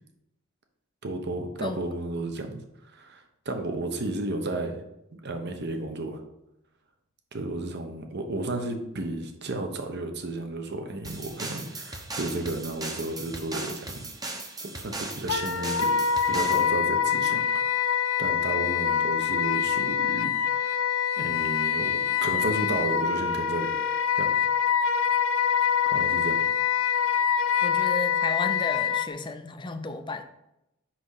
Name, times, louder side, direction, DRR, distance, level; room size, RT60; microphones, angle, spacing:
voice 1, 1.0-4.8 5.1-6.2 7.3-14.1 14.6-15.9 16.3-20.9 21.2-23.7 24.2-24.3 25.8-26.4, right 2 dB, 55° right, 5 dB, 1.0 m, -33 dB
sound 1, 11.0-16.7, right 2 dB, 20° right, 0.9 m, -38 dB
Wind instrument woodwind instrument, 15.3-29.1, left 8 dB, 75° left, 0.6 m, -25 dB
voice 2, 27.6-30.2, left 3 dB, 20° left, 8 dB, 0.6 m, -33 dB
6.0 x 5.6 x 4.8 m, 0.86 s
head